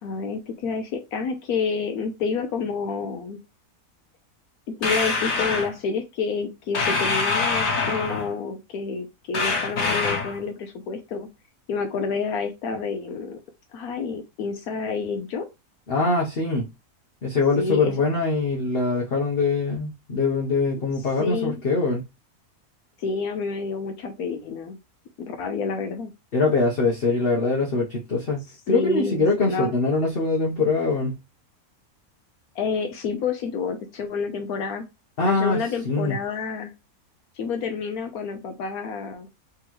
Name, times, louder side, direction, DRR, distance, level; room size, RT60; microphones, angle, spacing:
voice 1, 0.0-3.4 4.7-11.3 11.7-13.4 13.7-15.5 17.6-17.9 21.2-21.6 23.0-24.8 25.2-26.1 28.7-29.7 32.5-34.9 35.2-36.7 37.4-39.3, left 5 dB, 80° left, 1.1 m, -29 dB
sound 1, 4.8-5.7 6.7-8.3 9.3-10.4, left 3 dB, 65° left, 1.5 m, -24 dB
voice 2, 15.9-16.7 17.2-22.0 26.3-31.2 35.2-35.6 35.8-36.2, left 3 dB, 45° left, 1.0 m, -23 dB
3.8 x 3.4 x 3.0 m
omnidirectional pair, 1.6 m